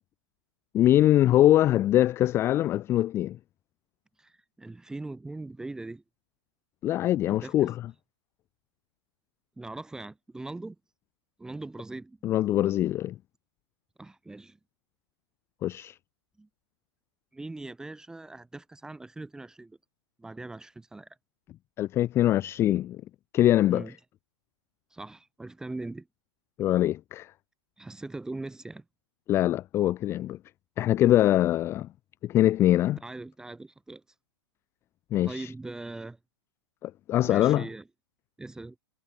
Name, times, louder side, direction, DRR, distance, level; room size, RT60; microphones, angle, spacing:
voice 1, 0.7-3.4 6.8-7.7 12.2-13.2 15.6-16.0 21.8-23.0 23.3-23.9 26.6-27.3 29.3-30.4 30.8-31.9 32.2-33.0 35.1-35.5 36.8-37.6, left 13 dB, 15° left, 0.5 m, -23 dB
voice 2, 4.2-6.0 7.3-7.7 9.6-10.8 11.4-12.2 14.0-14.6 16.4-16.5 17.3-19.8 20.2-21.1 23.7-24.0 24.9-26.1 27.8-28.8 33.0-34.0 35.2-36.2 37.2-37.9 38.4-38.8, right 2 dB, 5° right, 1.5 m, -40 dB
hypercardioid pair, 155°, 15 cm